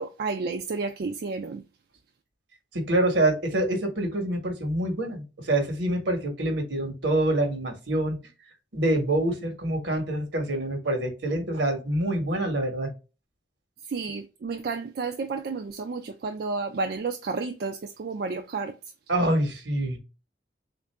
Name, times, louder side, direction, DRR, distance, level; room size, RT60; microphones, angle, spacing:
voice 1, 0.0-1.6 13.9-18.8, right 4 dB, 55° right, 0.3 m, -31 dB
voice 2, 2.7-8.2 8.7-12.9 19.1-20.0, right 1 dB, 80° right, 1.2 m, -26 dB
3.6 x 2.5 x 3.2 m
head